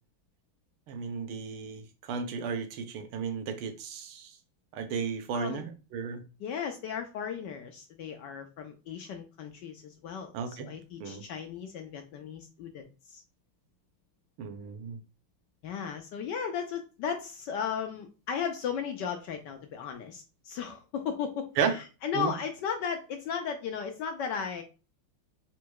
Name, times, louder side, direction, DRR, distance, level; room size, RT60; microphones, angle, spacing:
voice 1, 0.9-4.3 4.7-6.2 10.3-10.7 11.0-11.2 14.4-15.0 21.6-21.7 22.1-22.3, right 6 dB, 85° right, 8 dB, 1.6 m, -34 dB
voice 2, 6.4-13.2 15.6-24.6, left 7 dB, 75° left, 5 dB, 1.0 m, -36 dB
4.2 x 2.3 x 4.6 m, 0.32 s
omnidirectional pair, 2.3 m